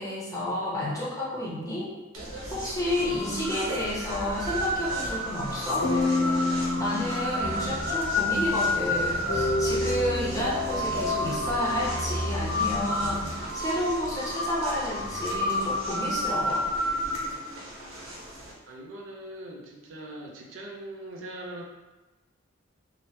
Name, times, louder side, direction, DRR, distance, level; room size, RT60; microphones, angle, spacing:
voice 1, 0.0-1.9 2.5-5.9 6.8-16.7, left 1 dB, 15° left, -7 dB, 0.7 m, -30 dB
sound 1, 2.1-18.5, left 1 dB, 85° right, 0.8 m, -31 dB
sound 2, 4.7-5.1 5.8-8.6 9.3-12.5, left 2 dB, 70° left, 0.6 m, -30 dB
sound 3, 7.4-13.3, equal, 10° right, 1.0 m, -37 dB
voice 2, 18.7-21.6, right 1 dB, 65° right, -1 dB, 0.5 m, -41 dB
2.9 x 2.0 x 3.0 m, 1.1 s
head